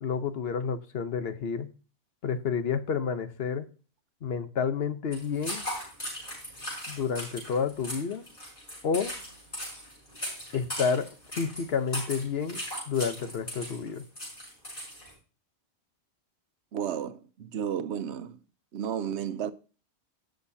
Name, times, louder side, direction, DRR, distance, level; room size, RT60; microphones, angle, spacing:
voice 1, 0.0-1.7 2.2-3.7 4.2-5.7 6.9-8.2 8.8-9.1 10.5-11.1 11.4-12.6 12.9-14.0, left 6 dB, 65° left, 1.1 m, -30 dB
sound 1, 5.1-15.1, equal, 35° left, 6.3 m, -38 dB
voice 2, 16.7-18.4 18.7-19.5, right 9 dB, 90° right, 1.0 m, -32 dB
18.5 x 6.5 x 2.7 m
omnidirectional pair, 1.1 m